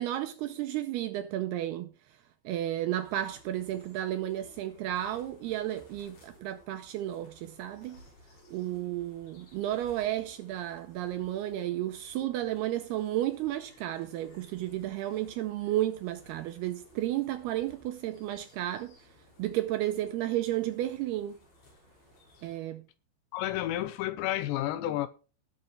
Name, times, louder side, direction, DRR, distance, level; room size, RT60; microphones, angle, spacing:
voice 1, 0.0-1.9 2.5-8.0 8.5-19.0 19.4-21.4 22.4-22.8, right 13 dB, 80° right, 2.4 m, -32 dB
sound 1, 3.0-22.6, equal, 60° left, 8.2 m, -58 dB
voice 2, 23.3-25.1, left 14 dB, 80° left, 2.8 m, -31 dB
19.0 x 6.6 x 3.3 m
omnidirectional pair, 5.2 m